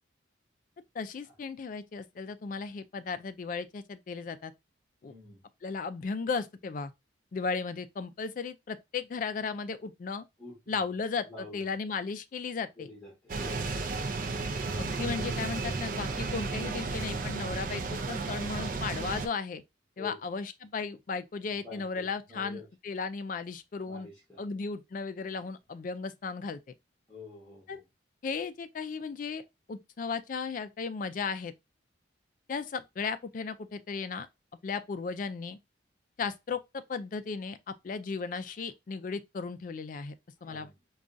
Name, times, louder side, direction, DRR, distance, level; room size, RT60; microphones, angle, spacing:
voice 1, 0.9-4.5 5.0-5.1 5.6-6.9 7.3-10.2 10.7-12.9 14.8-19.6 20.0-24.1 24.4-26.6 27.7-27.8 28.2-29.4 29.7-31.5 32.5-34.3 34.6-35.6 36.2-40.1 40.4-40.7, left 5 dB, 40° left, 0.3 m, -35 dB
voice 2, 5.0-5.4 10.4-10.8 11.3-11.7 12.8-13.7 20.0-20.1 21.6-22.6 23.9-24.4 27.1-27.8 40.5-40.7, left 4 dB, 10° left, 1.4 m, -47 dB
sound 1, 13.3-19.3, right 3 dB, 45° right, 0.4 m, -33 dB
4.9 x 2.3 x 2.5 m
head